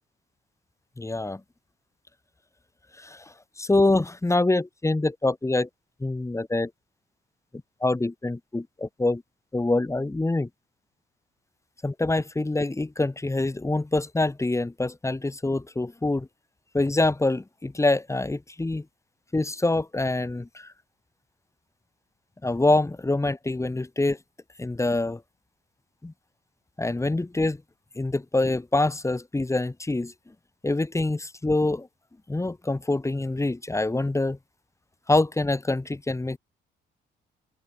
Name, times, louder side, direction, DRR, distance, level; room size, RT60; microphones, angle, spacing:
voice 1, 1.0-1.4 3.0-3.2 3.6-5.7 6.0-6.7 7.8-9.2 9.5-10.5 11.8-16.3 16.7-18.8 19.3-20.7 22.4-24.2 24.6-25.2 26.0-26.1 26.8-27.6 28.0-30.1 30.6-31.9 32.3-34.4 35.1-36.4, left 2 dB, 15° left, 2.3 m, -25 dB
open air
cardioid pair, 90°, 20 cm